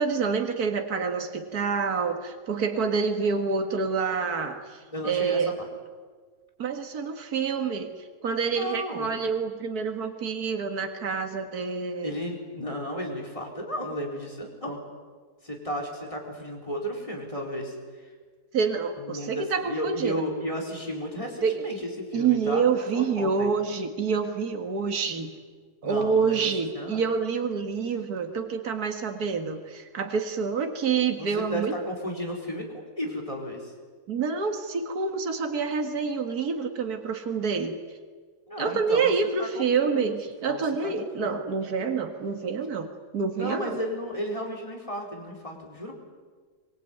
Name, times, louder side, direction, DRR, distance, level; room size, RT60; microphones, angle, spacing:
voice 1, 0.0-5.6 6.6-7.9 8.2-12.1 18.5-20.2 21.4-21.7 22.1-25.4 25.8-31.7 34.1-37.8 38.6-43.8, right 5 dB, 65° right, 5 dB, 2.3 m, -27 dB
voice 2, 4.9-5.7 8.5-9.1 12.0-14.8 15.4-18.1 19.0-23.5 25.8-27.0 31.2-33.7 38.5-39.1 39.4-40.2 40.5-41.4 43.3-46.0, equal, 20° left, 1 dB, 4.5 m, -34 dB
23.5 x 23.0 x 9.3 m, 1.5 s
omnidirectional pair, 1.7 m